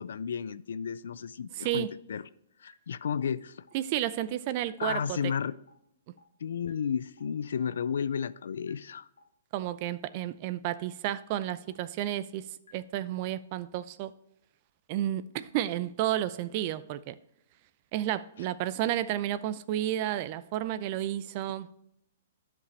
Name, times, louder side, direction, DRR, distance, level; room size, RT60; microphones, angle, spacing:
voice 1, 0.0-2.2 2.6-3.7 4.8-5.6 6.4-9.1, left 7 dB, 75° left, 0.4 m, -33 dB
voice 2, 1.6-1.9 3.7-5.2 9.5-12.4 12.7-14.1 14.9-17.1 17.9-21.7, right 13 dB, 45° right, 0.5 m, -31 dB
sound 1, 2.7-2.8 3.2-3.3 3.7-3.8 4.2-4.3 4.7-4.8 5.2-5.3 5.7-5.8 6.2-6.3 6.7-6.8 7.2-7.3 7.7-7.8 8.2-8.3 8.7-8.8 9.2-9.3 9.7-9.8 10.2-10.3 10.7-10.8 11.2-11.3 11.7-11.8 12.2-12.3 12.7-12.8 13.2-13.3, left 5 dB, 90° left, 1.3 m, -56 dB
12.0 x 5.2 x 3.2 m
hypercardioid pair, 125°, 0 cm